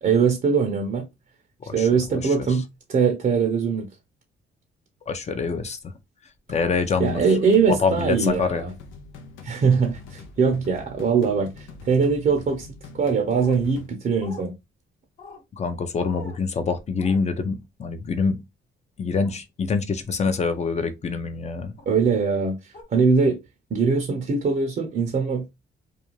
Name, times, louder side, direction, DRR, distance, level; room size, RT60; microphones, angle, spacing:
voice 1, 0.0-1.1 1.7-3.9 7.0-8.7 9.4-12.7 12.9-14.5 21.9-23.4 23.7-25.5, right 5 dB, 45° right, 0.6 m, -22 dB
voice 2, 1.7-2.2 5.1-5.8 6.5-7.2 7.7-8.6 15.6-18.4 19.0-21.7, left 4 dB, 35° left, 0.6 m, -25 dB
sound 1, 6.5-13.9, left 4 dB, 90° left, 0.6 m, -44 dB
sound 2, 13.3-13.6 14.2-14.5 15.2-15.4 16.0-16.4 17.0-17.2 19.2-19.4 20.2-20.5 21.8-21.9 22.7-22.8, left 2 dB, 55° left, 1.2 m, -42 dB
2.5 x 2.2 x 2.9 m
cardioid pair, 90°, 20 cm